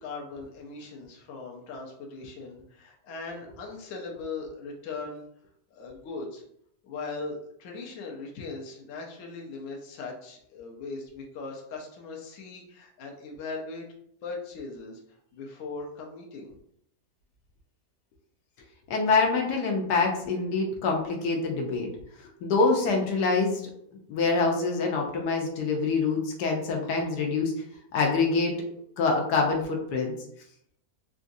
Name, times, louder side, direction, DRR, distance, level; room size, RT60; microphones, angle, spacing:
voice 1, 0.0-5.2 5.7-6.4 6.8-13.9 14.2-15.0 15.3-16.6, left 3 dB, 60° left, 0 dB, 0.9 m, -39 dB
voice 2, 18.9-21.9 22.4-23.6 24.1-27.5 27.9-28.5 29.0-30.1, left 4 dB, 80° left, 1 dB, 1.2 m, -25 dB
3.8 x 2.4 x 2.6 m, 0.70 s
omnidirectional pair, 1.8 m